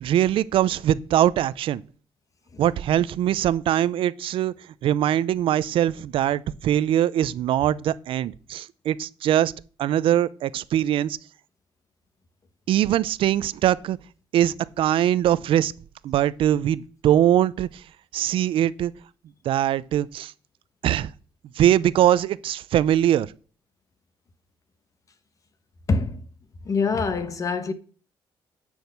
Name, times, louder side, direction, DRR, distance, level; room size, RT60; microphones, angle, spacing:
voice 1, 0.0-1.8 2.6-4.5 4.8-9.5 9.8-11.2 12.7-14.0 14.3-15.7 16.0-17.8 18.1-18.9 19.4-20.3 20.8-21.1 21.6-23.3, right 11 dB, 75° right, 0.5 m, -22 dB
voice 2, 25.9-26.2 26.6-27.7, left 4 dB, 35° left, 1.3 m, -24 dB
10.0 x 6.3 x 8.0 m
cardioid pair, 125°, 9 cm